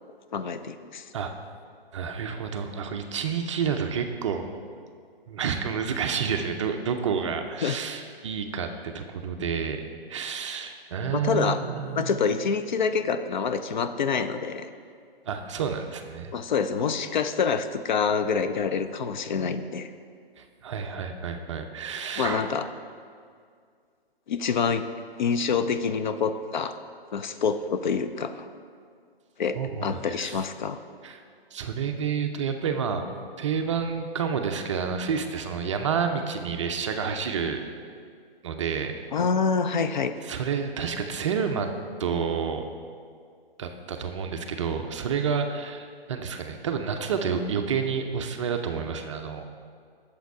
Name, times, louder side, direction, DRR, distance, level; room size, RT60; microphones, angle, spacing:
voice 1, 0.3-1.1 7.6-7.8 11.1-11.6 12.0-14.7 16.3-19.9 22.2-22.7 24.3-24.8 25.2-26.8 27.1-28.5 29.4-30.8 39.1-40.1, left 6 dB, 50° left, 10 dB, 0.5 m, -26 dB
voice 2, 1.9-4.5 5.3-9.8 10.1-12.2 15.3-16.3 20.4-22.5 29.6-30.4 31.0-31.2 31.5-33.1 33.4-37.6 38.4-39.0 40.2-41.7 42.0-42.7 43.6-49.4, right 6 dB, 30° right, 6 dB, 0.5 m, -29 dB
7.9 x 6.8 x 4.7 m, 2.1 s
figure-of-eight pair, 135°, 30 cm